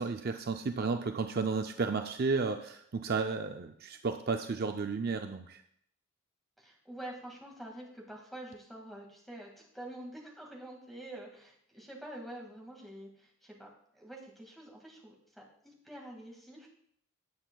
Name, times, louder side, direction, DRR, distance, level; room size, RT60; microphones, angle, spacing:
voice 1, 0.0-5.6, right 4 dB, 45° right, 6 dB, 0.4 m, -33 dB
voice 2, 6.6-16.7, right 1 dB, ahead, -1 dB, 1.9 m, -47 dB
17.0 x 7.9 x 2.3 m, 0.69 s
head